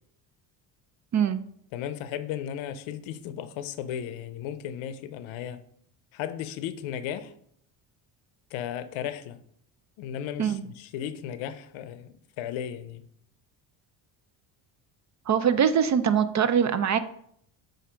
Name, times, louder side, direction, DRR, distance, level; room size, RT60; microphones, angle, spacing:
voice 1, 1.7-5.6 6.1-7.3 8.5-9.4 10.0-13.1, left 10 dB, 75° left, 0.7 m, -35 dB
voice 2, 15.3-17.0, right 8 dB, 35° right, 0.5 m, -23 dB
7.4 x 2.7 x 5.0 m
supercardioid pair, 85°, 48 cm